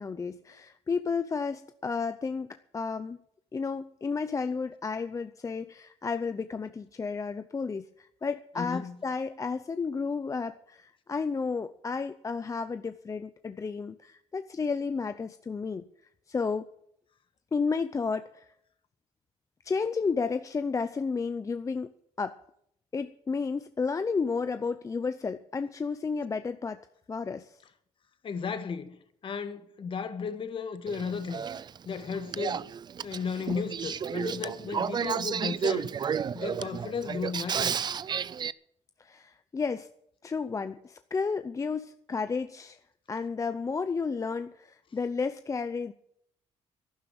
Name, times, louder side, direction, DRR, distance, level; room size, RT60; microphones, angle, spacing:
voice 1, 0.0-3.2 3.5-15.9 16.3-16.7 17.5-18.5 19.6-21.9 22.2-22.4 22.9-26.8 27.1-27.6 39.0-39.9 40.2-42.8 43.1-45.9, left 5 dB, 30° left, 0.7 m, -32 dB
voice 2, 8.6-9.0 28.2-31.5 31.8-32.7 33.0-35.9 36.3-37.8, left 5 dB, 50° left, 1.6 m, -34 dB
Male speech man speaking / Female speech woman speaking / Conversation, 30.9-38.5, right 7 dB, 40° right, 0.5 m, -32 dB
12.0 x 11.0 x 8.8 m
cardioid pair, 100°, 11 cm